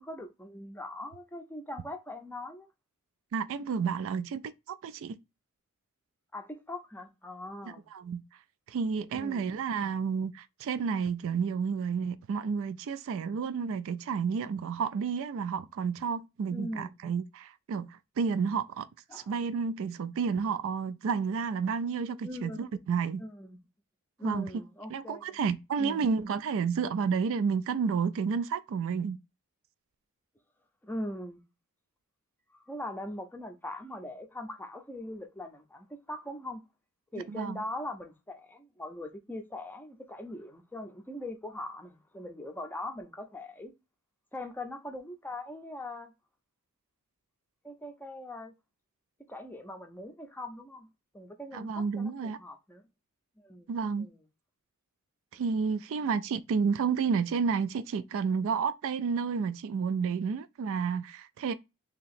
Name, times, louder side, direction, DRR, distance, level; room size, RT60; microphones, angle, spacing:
voice 1, 0.0-2.7 6.3-7.9 9.1-9.5 16.5-16.9 19.1-19.3 22.2-22.7 23.2-23.6 24.2-25.4 25.8-26.0 30.8-31.4 32.7-36.6 37.1-43.7 44.3-46.1 47.6-48.5 49.3-50.9 51.1-52.8 53.4-53.7 54.0-54.2, left 1 dB, 10° left, 0.5 m, -41 dB
voice 2, 3.3-5.2 7.6-8.2 8.7-18.8 19.1-23.2 24.2-24.5 24.9-29.2 37.3-37.6 51.5-52.4 53.7-54.1 55.3-61.5, right 5 dB, 60° right, 0.3 m, -31 dB
2.9 x 2.8 x 4.0 m
head